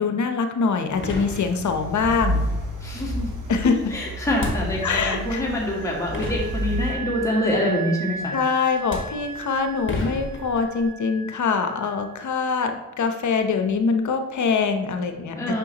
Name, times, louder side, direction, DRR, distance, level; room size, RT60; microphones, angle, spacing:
voice 1, 0.0-2.5 3.5-4.0 4.8-5.4 8.3-15.6, left 5 dB, 65° left, 7 dB, 0.8 m, -24 dB
sound 1, 0.6-0.7 1.0-1.9 4.3-5.2 5.8-5.9 6.1-7.1 8.2-8.4 8.7-10.9, left 1 dB, 40° left, 1.6 m, -32 dB
sound 2, 0.9-6.9, equal, 70° right, 1.4 m, -30 dB
voice 2, 2.8-3.3 3.9-8.3 15.3-15.6, left 1 dB, 10° left, -4 dB, 1.9 m, -25 dB
Wind instrument woodwind instrument, 5.2-12.6, right 4 dB, 30° right, 1.3 m, -37 dB
6.8 x 5.8 x 2.9 m, 1.1 s
cardioid pair, 55°, 32 cm